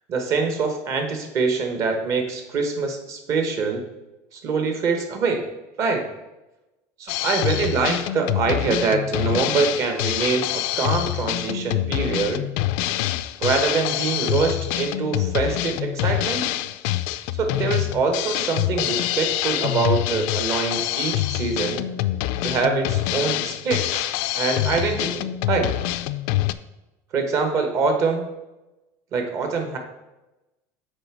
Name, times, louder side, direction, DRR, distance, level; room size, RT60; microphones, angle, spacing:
voice 1, 0.1-3.8 4.3-5.5 5.8-6.0 7.0-12.5 13.4-16.5 17.4-21.9 22.4-24.1 24.3-25.7 27.1-28.3 29.1-29.8, right 4 dB, 40° right, 5 dB, 1.2 m, -24 dB
Drum kit, 7.1-26.5, left 15 dB, 70° left, 0.4 m, -25 dB
8.0 x 3.4 x 6.0 m, 1.0 s
cardioid pair, 155°, 8 cm